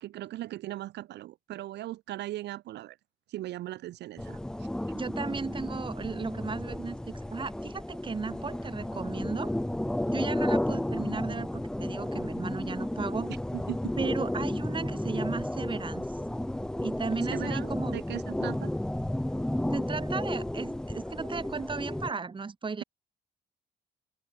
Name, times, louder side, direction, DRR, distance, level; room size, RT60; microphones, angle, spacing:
voice 1, 0.0-3.0 3.3-4.7 13.5-13.8 17.3-18.7, right 15 dB, 65° right, 0.6 m, -38 dB
sound 1, 4.2-22.1, left 1 dB, 5° left, 0.4 m, -32 dB
voice 2, 4.9-9.5 10.1-13.3 14.0-16.1 16.8-18.0 19.7-22.8, right 4 dB, 25° right, 0.9 m, -35 dB
open air
hypercardioid pair, 45°, 19 cm